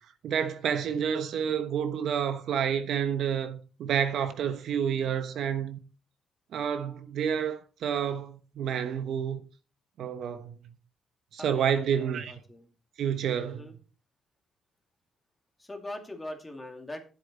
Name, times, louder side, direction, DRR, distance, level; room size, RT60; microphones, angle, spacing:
voice 1, 0.2-5.8 6.5-9.4 10.0-10.6 11.3-12.3 13.0-13.7, right 8 dB, 75° right, 1.1 m, -29 dB
voice 2, 11.4-12.6 13.4-13.7 15.6-17.0, left 1 dB, 15° left, 2.4 m, -41 dB
10.5 x 7.9 x 4.2 m
cardioid pair, 90°, 0 cm